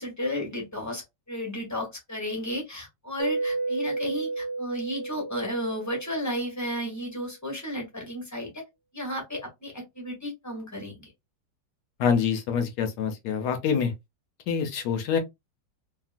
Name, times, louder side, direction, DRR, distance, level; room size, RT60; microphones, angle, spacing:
voice 1, 0.0-8.6 8.9-11.1, equal, 10° left, 0.9 m, -33 dB
Mallet percussion, 3.2-6.7, right 3 dB, 60° right, 0.8 m, -32 dB
voice 2, 12.0-13.9 14.5-15.2, left 6 dB, 70° left, 1.2 m, -26 dB
2.9 x 2.7 x 2.4 m
omnidirectional pair, 1.9 m